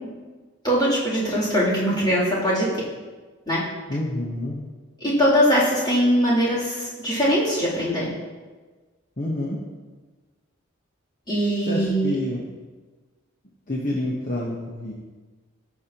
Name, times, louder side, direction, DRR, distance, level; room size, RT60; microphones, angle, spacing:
voice 1, 0.6-2.7 3.5-3.6 5.0-8.1 11.3-12.1, equal, 20° left, -8 dB, 3.1 m, -21 dB
voice 2, 3.9-4.6 9.2-9.6 11.7-12.4 13.7-14.9, left 1 dB, 40° left, -3 dB, 1.0 m, -28 dB
16.0 x 6.3 x 2.9 m, 1.3 s
head